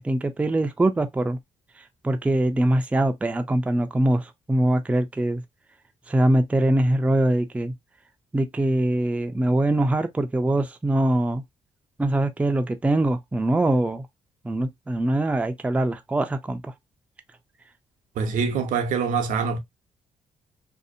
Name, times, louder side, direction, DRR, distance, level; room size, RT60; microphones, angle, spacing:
voice 1, 0.0-1.4 2.0-5.4 6.1-7.7 8.3-11.4 12.0-14.1 14.4-16.7, right 1 dB, 10° right, 0.4 m, -23 dB
voice 2, 18.2-19.6, right 5 dB, 75° right, 0.6 m, -24 dB
2.6 x 2.0 x 2.4 m
cardioid pair, 90°, 13 cm